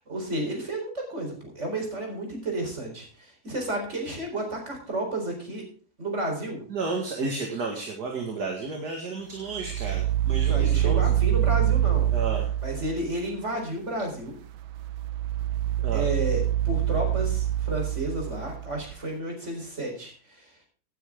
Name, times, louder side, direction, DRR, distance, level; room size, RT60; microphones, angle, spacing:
voice 1, 0.1-5.6 6.0-6.6 10.4-12.1 12.6-14.3 15.9-20.1, right 1 dB, 35° right, 1 dB, 4.4 m, -32 dB
voice 2, 6.7-11.0 12.1-12.5 15.8-16.1, right 3 dB, 55° right, 1 dB, 2.4 m, -32 dB
sound 1, 9.5-13.2 14.5-18.9, right 12 dB, 90° right, 1.7 m, -25 dB
17.0 x 9.2 x 3.7 m, 0.43 s
omnidirectional pair, 2.1 m